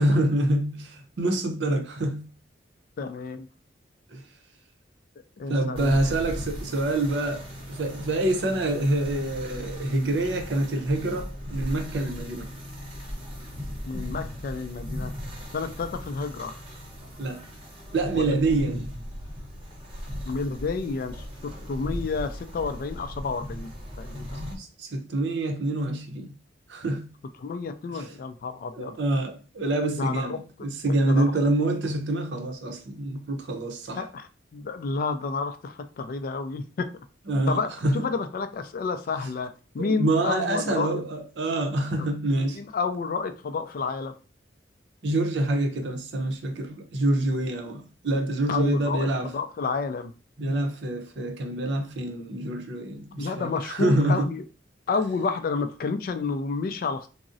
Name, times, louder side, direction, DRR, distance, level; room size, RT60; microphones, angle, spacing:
voice 1, 0.0-2.3 4.1-4.2 5.5-12.5 17.2-17.4 17.9-18.9 24.6-26.3 26.7-27.1 27.9-28.1 28.7-34.0 37.3-38.0 39.8-42.6 45.0-49.3 50.4-54.3, right 1 dB, 65° right, 0.6 m, -26 dB
voice 2, 3.0-3.5 5.4-6.0 13.8-15.1 15.5-16.6 18.1-18.7 20.2-21.1 21.4-23.7 24.0-24.4 27.4-29.0 30.0-30.4 30.9-31.3 33.9-36.9 37.5-41.0 42.0-42.1 42.4-44.1 48.5-50.1 53.2-54.4 54.9-57.1, left 4 dB, 50° left, 0.3 m, -30 dB
sound 1, 5.8-24.6, equal, 30° right, 0.7 m, -37 dB
3.6 x 2.0 x 2.5 m
head